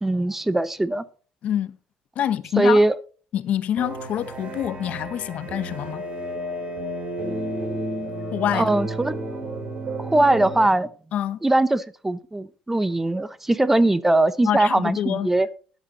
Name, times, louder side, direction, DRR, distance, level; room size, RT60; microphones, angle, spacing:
voice 1, 0.0-1.0 2.6-3.0 8.5-9.1 10.0-10.9 11.4-15.5, right 2 dB, 10° right, 0.7 m, -20 dB
voice 2, 2.2-2.8 3.3-6.0 8.3-8.7 11.1-11.4 14.4-15.3, left 10 dB, 60° left, 0.8 m, -26 dB
sound 1, 3.8-10.7, right 1 dB, 45° right, 4.1 m, -31 dB
14.0 x 11.0 x 3.0 m
cardioid pair, 100°, 3 cm